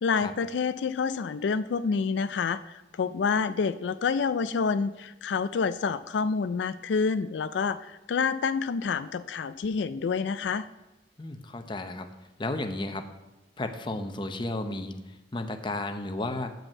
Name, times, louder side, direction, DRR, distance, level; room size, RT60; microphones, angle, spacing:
voice 1, 0.0-10.7, left 5 dB, 85° left, 13 dB, 0.4 m, -28 dB
voice 2, 11.2-12.1 12.4-13.1 13.6-14.9 15.3-16.5, left 2 dB, 30° left, 6 dB, 0.8 m, -33 dB
9.1 x 5.3 x 7.3 m, 1.1 s
head